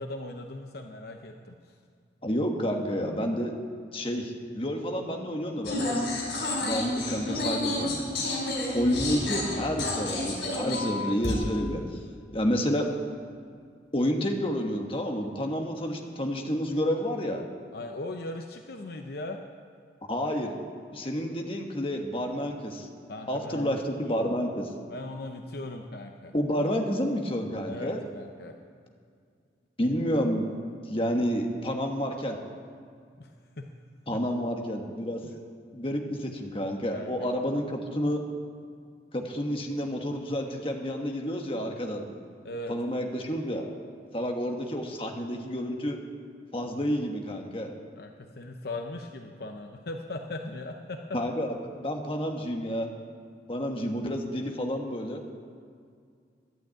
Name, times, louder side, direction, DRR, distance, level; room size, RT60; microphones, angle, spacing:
voice 1, 0.0-1.5 17.7-19.4 23.1-23.8 24.1-24.3 24.9-26.3 27.7-28.5 33.2-33.3 33.6-33.7 34.1-34.2 35.2-35.3 36.9-37.1 42.4-42.7 48.0-51.0, left 2 dB, 60° left, 4 dB, 0.8 m, -38 dB
voice 2, 2.2-3.5 3.9-6.2 6.6-7.9 8.7-11.8 12.3-12.8 13.9-17.4 20.1-20.5 20.9-22.9 23.3-24.7 26.3-28.0 29.8-30.5 30.9-32.4 34.1-35.2 35.7-38.2 39.1-42.0 42.7-43.7 44.1-46.0 46.5-47.7 51.1-52.9 53.5-55.2, equal, 30° left, 2 dB, 1.3 m, -29 dB
sound 1, 5.6-11.3, left 2 dB, 85° left, 4.4 m, -30 dB
11.5 x 9.2 x 8.8 m, 2.2 s
head